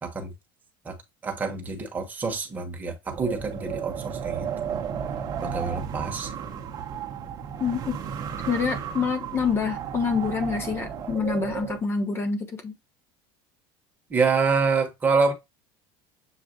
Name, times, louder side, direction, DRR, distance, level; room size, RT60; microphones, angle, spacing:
voice 1, 0.0-0.3 0.8-1.0 1.2-4.5 5.4-6.3 14.1-15.3, right 4 dB, 15° right, 1.1 m, -26 dB
Wind, 3.1-11.8, right 8 dB, 30° right, 0.8 m, -33 dB
voice 2, 7.6-8.0 8.5-12.7, left 5 dB, 20° left, 1.0 m, -27 dB
7.3 x 2.4 x 2.4 m
cardioid pair, 160°, 12 cm